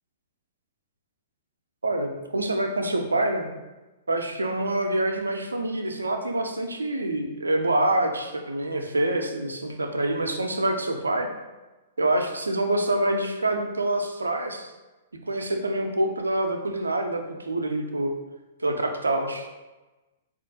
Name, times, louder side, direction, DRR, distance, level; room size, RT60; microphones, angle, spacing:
voice 1, 1.8-3.5 4.1-11.3 12.0-14.7 15.3-18.1 18.6-19.5, right 1 dB, 80° right, 5 dB, 0.4 m, -26 dB
4.3 x 2.4 x 2.7 m, 1.1 s
figure-of-eight pair, 110°, 0 cm